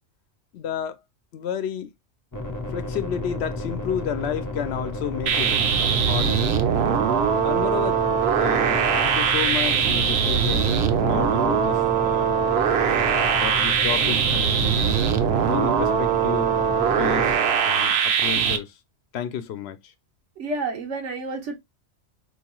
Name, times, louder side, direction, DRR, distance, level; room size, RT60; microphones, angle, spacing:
voice 1, 0.5-1.0 1.3-1.9 2.7-6.4 7.4-8.0 8.4-12.4 13.1-15.0 15.5-16.6 16.9-17.4 17.6-18.7 19.1-19.9, left 9 dB, 70° left, 0.8 m, -31 dB
sound 1, 2.3-17.3, left 1 dB, 25° left, 0.5 m, -32 dB
sound 2, 5.3-18.6, right 8 dB, 65° right, 0.8 m, -21 dB
voice 2, 20.4-21.6, right 3 dB, 80° right, 1.1 m, -30 dB
4.5 x 2.3 x 2.9 m
omnidirectional pair, 1.2 m